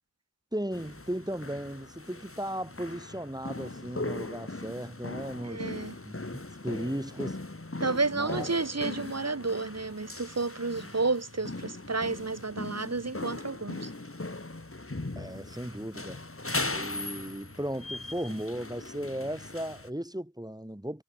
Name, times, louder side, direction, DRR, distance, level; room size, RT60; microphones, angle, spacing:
voice 1, 0.5-5.7 6.1-7.4 8.1-8.5 15.2-16.2 16.7-21.0, equal, 15° right, 3.4 m, -36 dB
sound 1, 0.7-19.9, left 2 dB, 45° left, 3.8 m, -39 dB
voice 2, 5.4-6.0 7.8-13.9, right 3 dB, 55° right, 1.8 m, -31 dB
wide cardioid pair, 45°, 30 cm